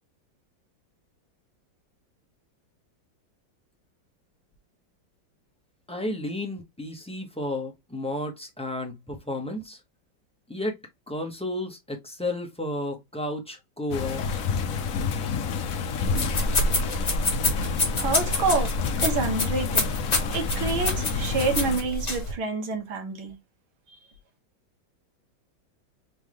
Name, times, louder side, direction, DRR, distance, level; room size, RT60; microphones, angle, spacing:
voice 1, 5.9-9.8 10.5-10.8 11.1-14.2, left 1 dB, 5° left, 0.5 m, -32 dB
sound 1, 13.9-21.8, left 5 dB, 65° left, 0.9 m, -29 dB
sound 2, 16.1-22.3, left 2 dB, 25° left, 0.9 m, -27 dB
voice 2, 18.0-18.7 19.0-19.9 20.3-23.4, right 3 dB, 80° right, 2.1 m, -27 dB
4.5 x 3.6 x 3.1 m
omnidirectional pair, 2.2 m